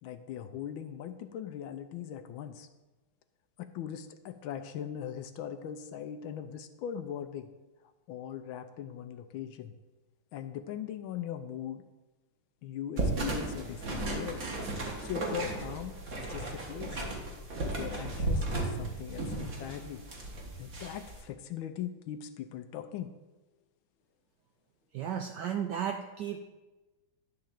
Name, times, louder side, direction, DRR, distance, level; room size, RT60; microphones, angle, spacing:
voice 1, 0.0-2.7 3.6-7.5 8.1-9.8 10.3-11.8 12.6-14.4 15.0-17.0 17.6-20.0 20.6-23.1, left 9 dB, 75° left, 9 dB, 1.3 m, -40 dB
sound 1, 13.0-21.2, right 2 dB, 45° right, 1.7 m, -35 dB
voice 2, 24.9-26.4, right 8 dB, 80° right, 6 dB, 0.9 m, -34 dB
11.5 x 3.9 x 7.2 m, 1.1 s
omnidirectional pair, 2.4 m